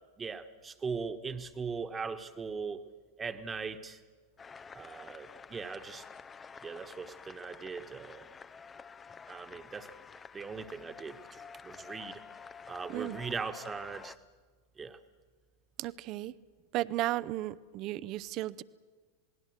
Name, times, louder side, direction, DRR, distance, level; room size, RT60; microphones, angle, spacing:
voice 1, 0.2-2.8 3.2-4.0 4.7-6.0 6.6-8.2 9.3-9.9 10.3-12.2 12.7-14.1 14.8-15.0, right 5 dB, 20° right, 9 dB, 1.3 m, -39 dB
sound 1, 4.4-14.2, left 5 dB, 20° left, 0.6 m, -50 dB
voice 2, 12.9-13.2 15.8-16.3 16.7-18.6, right 16 dB, 45° right, 18 dB, 0.6 m, -34 dB
27.5 x 19.5 x 6.5 m, 1.5 s
hypercardioid pair, 90°, 0 cm